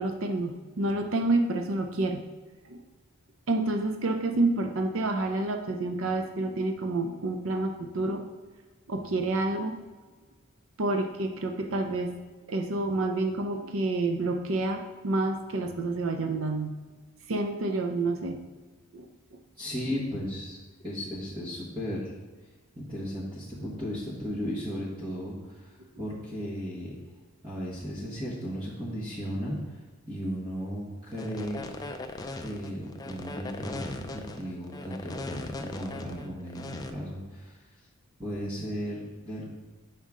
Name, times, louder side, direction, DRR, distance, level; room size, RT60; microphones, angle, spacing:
voice 1, 0.0-2.2 2.7-2.8 3.5-8.2 8.9-9.8 10.8-12.2 12.5-16.7 17.3-18.4 18.9-19.1, right 2 dB, 65° right, 5 dB, 0.5 m, -28 dB
voice 2, 19.6-20.6 20.8-22.1 22.7-26.9 27.4-29.8 30.1-31.7 32.4-37.8 38.2-39.5, equal, 20° right, -8 dB, 1.4 m, -35 dB
sound 1, 31.1-36.9, left 2 dB, 15° left, 0.4 m, -39 dB
7.5 x 5.5 x 3.7 m, 1.3 s
head